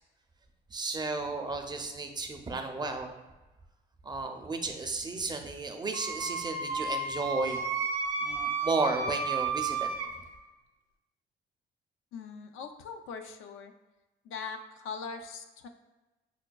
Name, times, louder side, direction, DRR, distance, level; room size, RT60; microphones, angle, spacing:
voice 1, 0.7-3.1 4.0-9.9, right 3 dB, 20° right, 4 dB, 0.4 m, -33 dB
Wind instrument woodwind instrument, 5.9-10.1, right 4 dB, 85° right, 0.5 m, -32 dB
voice 2, 12.1-13.7 14.2-15.7, left 5 dB, 90° left, 6 dB, 0.4 m, -41 dB
6.0 x 2.2 x 2.2 m, 1.1 s
cardioid pair, 90°, 20 cm